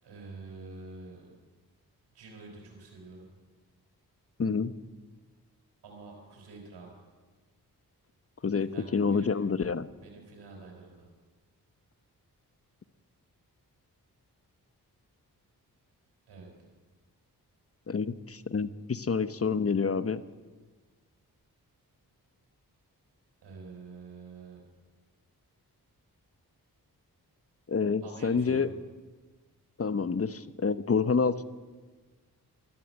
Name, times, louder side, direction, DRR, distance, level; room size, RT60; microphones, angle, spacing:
voice 1, 0.0-1.3 2.1-3.3 5.8-7.0 8.6-9.5 9.9-11.1 16.3-16.5 23.4-24.6 28.0-28.8, right 3 dB, 85° right, 0 dB, 4.7 m, -47 dB
voice 2, 4.4-4.7 8.4-9.9 17.9-20.2 27.7-28.7 29.8-31.4, left 5 dB, 35° left, 15 dB, 0.9 m, -28 dB
13.0 x 13.0 x 7.8 m, 1.3 s
supercardioid pair, 40°, 40 cm